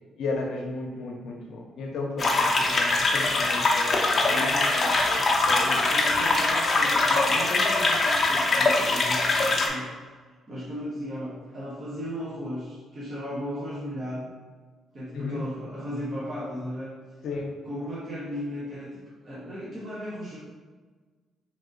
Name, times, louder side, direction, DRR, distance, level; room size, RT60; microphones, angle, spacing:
voice 1, 0.2-5.9 15.1-15.4 17.2-17.5, left 3 dB, 75° left, 1 dB, 0.7 m, -34 dB
sound 1, 2.2-9.7, left 3 dB, 35° left, 0.6 m, -23 dB
voice 2, 4.3-4.7 5.9-9.9 10.5-14.3 14.9-16.9 17.7-20.4, equal, 40° right, -8 dB, 1.0 m, -36 dB
3.4 x 2.6 x 3.8 m, 1.4 s
cardioid pair, 90°, 0 cm